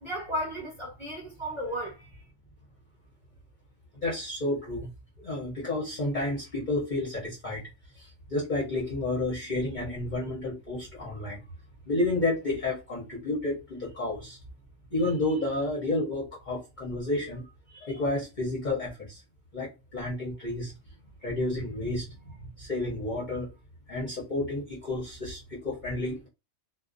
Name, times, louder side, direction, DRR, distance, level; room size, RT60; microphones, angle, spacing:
voice 1, 0.0-2.3, equal, 25° right, 0.9 m, -34 dB
voice 2, 4.0-4.9 5.2-7.6 8.0-11.4 11.9-14.4 14.9-17.4 17.7-19.2 19.5-20.7 21.2-22.1 22.6-23.5 23.9-26.3, left 2 dB, 45° left, 0.7 m, -31 dB
2.4 x 2.1 x 2.4 m
omnidirectional pair, 1.4 m